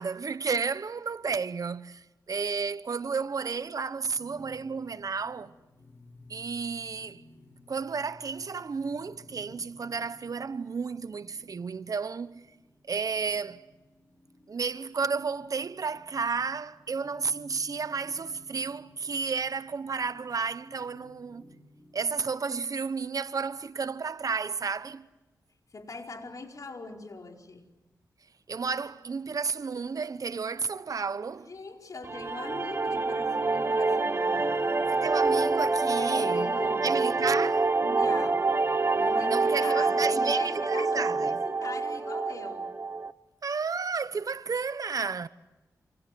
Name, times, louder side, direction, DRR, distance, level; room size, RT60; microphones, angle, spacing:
voice 1, 0.0-5.5 6.3-7.2 7.7-12.5 12.9-13.6 14.5-21.4 21.9-25.1 28.5-31.5 34.9-36.6 36.8-37.7 39.3-41.4 43.4-45.3, right 5 dB, 60° right, 1.0 m, -32 dB
sound 1, 4.1-22.1, left 2 dB, 35° left, 6.1 m, -56 dB
voice 2, 25.7-27.7 31.5-34.7 35.9-37.0 37.8-38.6 38.9-42.7, left 3 dB, 55° left, 4.7 m, -41 dB
sound 2, 32.0-43.1, right 3 dB, 35° right, 1.0 m, -26 dB
28.0 x 27.0 x 7.7 m
cardioid pair, 60°, 7 cm